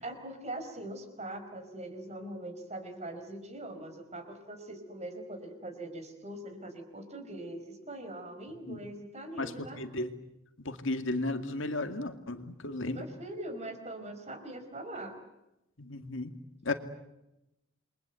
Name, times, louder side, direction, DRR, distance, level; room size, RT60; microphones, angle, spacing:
voice 1, 0.0-9.8 12.9-15.2, right 1 dB, 35° right, 8 dB, 4.7 m, -42 dB
voice 2, 9.4-10.1 10.6-13.0 15.8-16.3 16.6-16.7, left 2 dB, 70° left, 7 dB, 2.2 m, -34 dB
29.0 x 23.5 x 8.1 m, 0.92 s
head